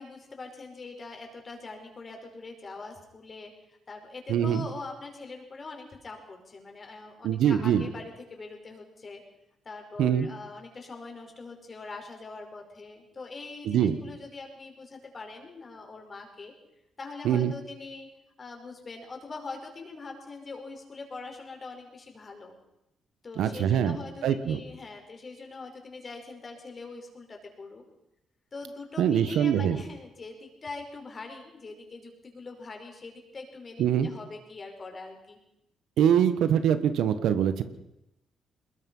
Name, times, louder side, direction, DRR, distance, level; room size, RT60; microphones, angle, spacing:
voice 1, 0.0-9.2 9.7-16.5 17.0-18.1 18.4-22.5 23.2-27.8 28.5-35.4, left 3 dB, 35° left, 3 dB, 5.4 m, -43 dB
voice 2, 4.3-4.7 7.2-7.8 10.0-10.3 13.6-14.0 17.2-17.5 23.4-24.0 24.2-24.6 29.0-29.8 33.8-34.1 36.0-37.6, right 9 dB, 80° right, 11 dB, 1.4 m, -23 dB
22.0 x 21.0 x 5.6 m, 0.87 s
cardioid pair, 90°, 0 cm